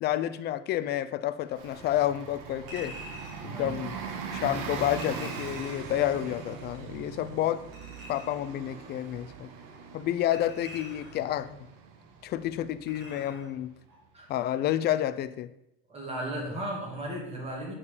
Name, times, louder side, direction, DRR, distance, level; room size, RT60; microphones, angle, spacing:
voice 1, 0.0-2.9 3.4-3.9 4.3-7.6 8.1-9.5 9.9-11.7 12.2-13.7 14.3-15.5, left 12 dB, 35° left, 13 dB, 0.4 m, -29 dB
Bus, 1.5-13.8, right 6 dB, 65° right, 1.1 m, -41 dB
Chink clink, 2.7-3.5 5.0-5.9 7.7-8.5 10.3-11.3 12.9-13.5 13.9-14.0, equal, 45° right, 2.9 m, -46 dB
voice 2, 15.9-17.7, right 1 dB, 20° right, -1 dB, 2.3 m, -35 dB
8.6 x 4.8 x 4.9 m, 0.84 s
cardioid pair, 150°, 30 cm